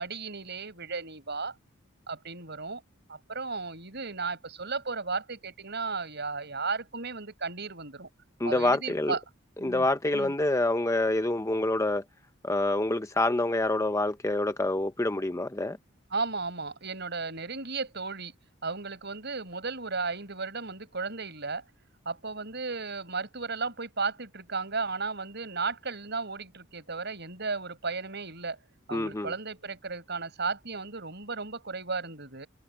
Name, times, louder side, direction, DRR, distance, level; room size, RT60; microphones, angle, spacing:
voice 1, 0.0-1.5 2.1-2.8 3.1-8.1 8.4-9.2 9.6-9.9 10.1-10.3 16.1-18.3 18.6-21.6 22.1-28.6 28.9-32.5, right 4 dB, 55° right, 7.3 m, -34 dB
voice 2, 8.4-9.1 9.6-12.0 12.4-15.8 28.9-29.3, left 2 dB, 15° left, 0.7 m, -27 dB
head